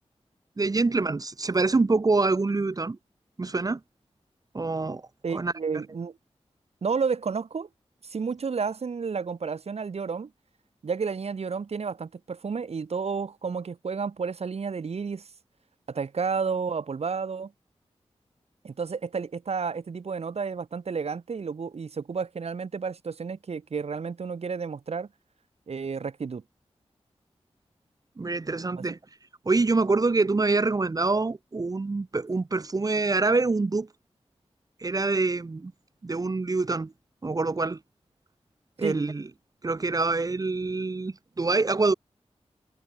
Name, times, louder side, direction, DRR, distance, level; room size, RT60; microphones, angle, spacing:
voice 1, 0.6-3.0 3.4-3.8 4.5-5.0 5.3-5.5 28.2-29.0 29.5-33.9 34.8-35.7 36.0-36.9 37.2-37.8 38.8-39.2 39.6-41.9, right 3 dB, 35° right, 1.0 m, -25 dB
voice 2, 5.2-6.2 6.8-7.7 8.0-10.3 10.8-15.2 15.9-17.5 18.6-25.1 25.7-26.4 28.8-28.9 38.8-39.0, right 5 dB, 70° right, 2.5 m, -31 dB
wide cardioid pair, 110°, 11 cm